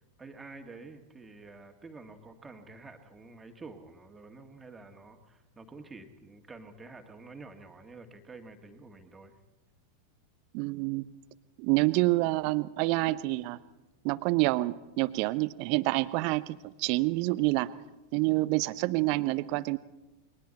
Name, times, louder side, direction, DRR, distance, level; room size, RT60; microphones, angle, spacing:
voice 1, 0.2-9.4, right 3 dB, 15° right, 4 dB, 2.2 m, -49 dB
voice 2, 10.5-11.1 11.6-13.6 14.0-17.7 18.1-19.8, right 21 dB, 45° right, 16 dB, 0.8 m, -27 dB
29.5 x 23.0 x 4.3 m, 1.1 s
figure-of-eight pair, 90°, 0 cm